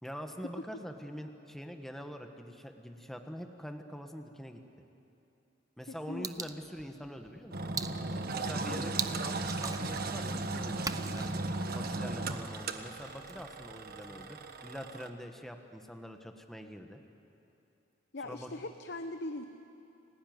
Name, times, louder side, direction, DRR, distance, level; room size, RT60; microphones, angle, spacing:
voice 1, 0.0-4.6 5.8-7.7 8.3-11.3 11.7-17.0 18.2-18.5, equal, ahead, 5 dB, 1.4 m, -44 dB
voice 2, 5.9-6.5 8.7-8.9 18.1-19.5, left 2 dB, 60° left, 7 dB, 1.0 m, -41 dB
sound 1, 6.2-14.2, right 5 dB, 20° right, 0.7 m, -43 dB
Engine, 7.5-15.1, right 2 dB, 55° right, 1.4 m, -36 dB
29.0 x 18.5 x 9.5 m, 2.8 s
head